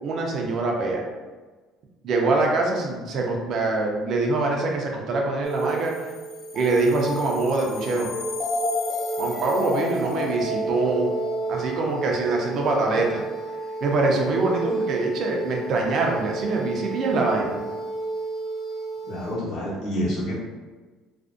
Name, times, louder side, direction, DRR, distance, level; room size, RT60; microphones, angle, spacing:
voice 1, 0.0-1.0 2.0-6.1 6.5-8.1 9.2-11.1 11.5-13.2 13.8-17.6, right 3 dB, 55° right, 0 dB, 0.5 m, -24 dB
sound 1, 5.4-19.3, right 1 dB, 25° left, 0.6 m, -31 dB
voice 2, 19.0-20.3, equal, 70° left, -6 dB, 0.9 m, -28 dB
2.5 x 2.1 x 2.4 m, 1.3 s
cardioid pair, 125°, 0 cm